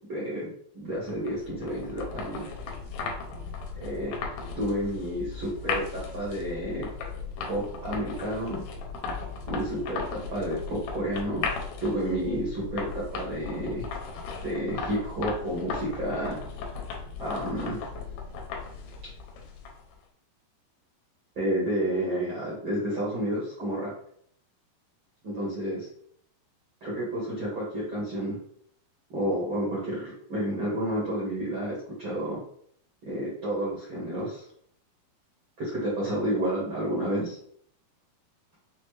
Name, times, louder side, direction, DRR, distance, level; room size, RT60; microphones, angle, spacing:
voice 1, 0.1-0.5 0.7-2.4 3.7-6.9 7.5-8.6 9.5-11.5 11.8-13.9 14.4-16.4 17.2-17.8 21.3-23.9 25.2-25.9 26.8-28.4 29.1-32.4 33.0-34.4 35.6-37.4, right 1 dB, 75° right, -7 dB, 1.1 m, -30 dB
sound 1, 0.9-19.9, left 5 dB, 75° left, 2.0 m, -37 dB
6.3 x 2.1 x 3.2 m, 0.64 s
omnidirectional pair, 4.5 m